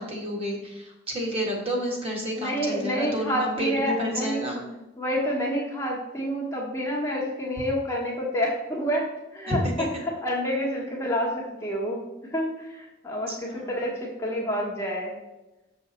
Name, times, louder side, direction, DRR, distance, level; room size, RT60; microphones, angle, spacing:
voice 1, 0.0-4.7 9.5-9.9 13.3-13.8, equal, 30° right, -2 dB, 1.9 m, -30 dB
voice 2, 2.4-4.4 5.0-9.1 9.3-9.6 10.0-11.3 11.6-12.0 12.3-15.2, equal, 15° left, -3 dB, 1.1 m, -28 dB
7.3 x 6.3 x 4.3 m, 1.0 s
head